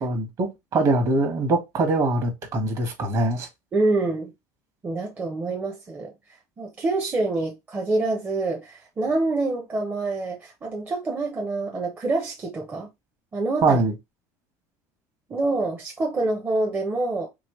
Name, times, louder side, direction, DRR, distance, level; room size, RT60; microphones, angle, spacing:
voice 1, 0.0-3.5 13.6-13.9, right 2 dB, 45° right, 1.3 m, -23 dB
voice 2, 3.7-4.3 4.8-6.1 6.6-12.9 13.3-13.8 15.3-17.3, right 2 dB, 25° right, 0.8 m, -26 dB
3.1 x 3.0 x 3.0 m
supercardioid pair, 115°, 8 cm